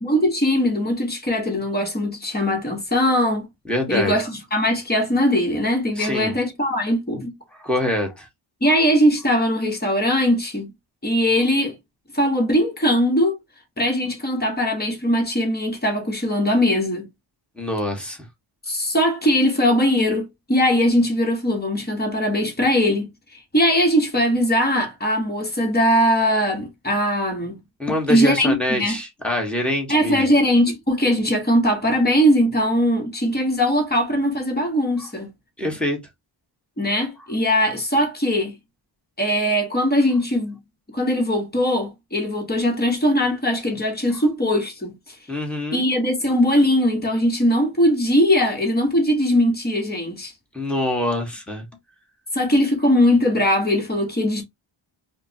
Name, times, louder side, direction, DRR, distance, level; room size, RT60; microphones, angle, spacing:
voice 1, 0.0-3.5 3.9-7.3 8.6-10.7 11.0-11.7 12.1-13.4 13.8-17.1 18.7-27.6 28.1-29.0 29.9-35.3 36.8-38.5 39.2-40.6 40.9-45.1 45.7-50.3 52.3-54.4, equal, 20° left, 1.4 m, -20 dB
voice 2, 3.7-4.1 6.0-6.3 7.6-8.3 17.6-18.2 27.8-30.2 35.6-36.0 45.3-45.8 50.5-51.6, left 1 dB, ahead, 1.3 m, -24 dB
4.9 x 2.2 x 2.9 m
wide cardioid pair, 125°, 46 cm